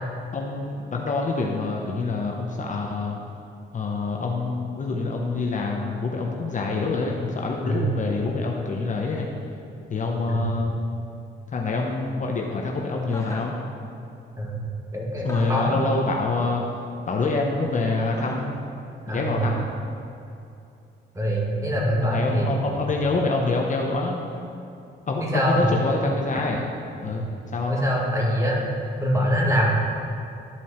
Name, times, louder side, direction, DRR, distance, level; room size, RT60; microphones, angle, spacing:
voice 1, 0.3-3.2 3.7-9.3 9.9-10.7 11.5-13.5 15.2-16.8 17.1-18.6 19.1-19.7 22.0-24.2 25.1-26.6 27.0-27.3 27.5-27.8, left 3 dB, 40° left, 0 dB, 0.9 m, -26 dB
Chuckle chortle, 13.1-13.6 15.2-15.8 18.1-18.6, left 2 dB, 15° left, 1.0 m, -38 dB
voice 2, 14.9-15.8 19.1-19.5 21.1-22.6 25.2-25.7 27.0-27.2 27.7-28.6 29.0-29.7, equal, 15° right, -3 dB, 2.2 m, -23 dB
12.5 x 4.5 x 4.3 m, 2.7 s
cardioid pair, 90°, 20 cm